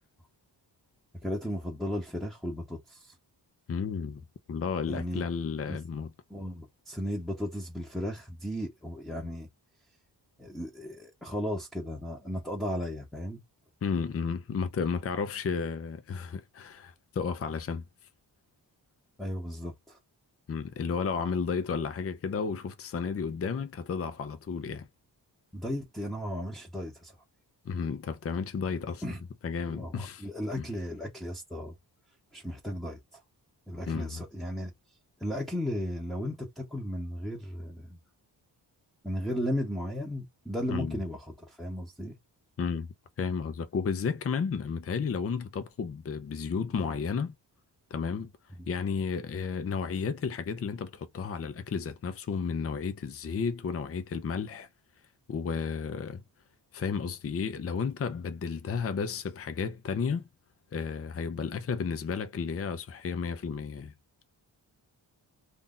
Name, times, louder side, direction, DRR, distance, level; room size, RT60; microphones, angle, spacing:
voice 1, 1.2-3.1 4.9-5.2 5.7-5.8 6.3-9.5 10.4-13.4 19.2-20.0 25.5-27.1 29.0-29.2 29.7-31.7 32.3-33.2 33.7-34.7 35.2-38.0 39.0-42.2, equal, ahead, 0.9 m, -35 dB
voice 2, 3.7-4.2 4.5-6.1 13.8-17.9 20.5-24.9 27.6-29.0 29.4-30.3 30.6-30.7 33.9-34.2 40.7-41.0 42.6-42.9 43.2-47.3 47.9-48.3 48.7-54.7 55.3-56.2 56.7-60.3 60.7-63.9, left 5 dB, 35° left, 0.6 m, -32 dB
2.7 x 2.5 x 3.7 m
wide cardioid pair, 125°, 42 cm